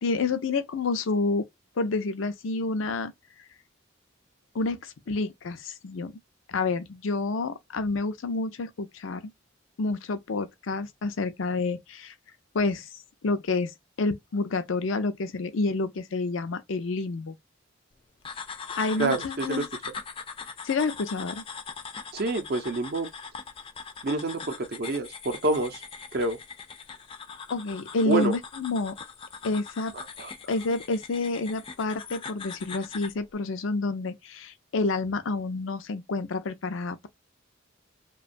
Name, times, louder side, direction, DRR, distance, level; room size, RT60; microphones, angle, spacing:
voice 1, 0.0-1.4 1.8-3.1 4.5-6.1 6.5-9.2 9.8-12.1 12.5-12.9 13.2-13.7 14.0-17.4 18.8-19.7 20.6-21.4 27.5-29.0 29.4-29.9 30.5-37.1, left 3 dB, 80° left, 0.5 m, -29 dB
sound 1, 18.2-33.2, left 5 dB, 25° left, 0.4 m, -41 dB
voice 2, 19.0-19.7 22.1-23.1 24.0-25.8 26.1-26.4 28.1-28.3 29.9-30.3, right 3 dB, 50° right, 0.5 m, -27 dB
2.9 x 2.2 x 2.5 m
head